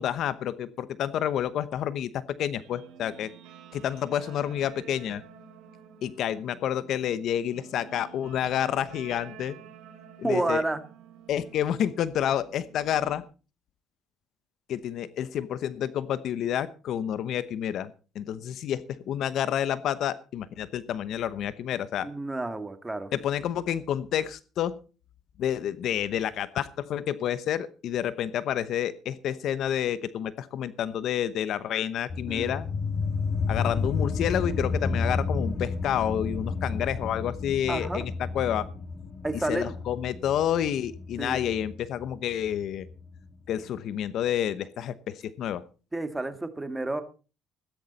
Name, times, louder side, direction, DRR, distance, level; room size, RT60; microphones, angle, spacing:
voice 1, 0.0-3.3 3.7-5.2 6.0-9.6 10.2-10.6 11.3-13.2 14.7-22.1 23.1-24.8 25.4-32.6 33.5-38.7 39.5-42.9 43.5-45.6, left 10 dB, 60° left, 15 dB, 0.9 m, -29 dB
Guitar, 2.6-13.2, right 9 dB, 80° right, 3.2 m, -50 dB
voice 2, 10.2-10.8 22.0-23.1 32.3-32.5 37.7-38.0 39.2-39.7 41.2-41.4 45.9-47.0, right 2 dB, 10° right, 8 dB, 1.9 m, -30 dB
sound 1, 32.1-43.2, left 4 dB, 35° left, 2.0 m, -31 dB
15.5 x 13.0 x 4.1 m, 0.35 s
cardioid pair, 110°, 0 cm